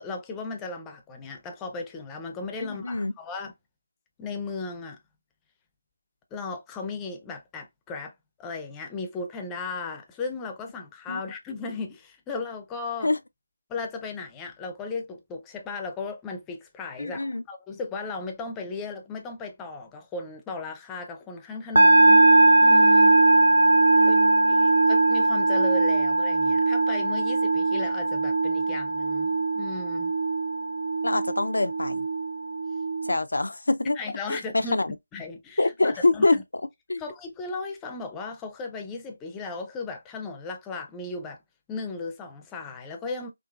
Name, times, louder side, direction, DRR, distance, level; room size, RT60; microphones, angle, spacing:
voice 1, 0.0-3.5 4.2-5.0 6.3-8.1 8.4-13.1 13.7-22.2 22.6-23.2 24.0-24.2 24.5-29.3 29.5-30.1 34.0-34.8 35.1-36.4 37.0-41.4 41.7-43.3, left 4 dB, 10° left, 0.5 m, -36 dB
voice 2, 2.6-3.1 11.1-11.2 13.0-13.2 17.0-17.4 23.9-24.7 31.0-32.1 33.0-34.0 34.3-34.9 35.6-36.4 36.9-37.0, left 2 dB, 75° left, 0.4 m, -25 dB
sound 1, 21.7-33.2, right 2 dB, 65° right, 0.4 m, -20 dB
3.8 x 2.5 x 2.3 m
figure-of-eight pair, 160°, 0 cm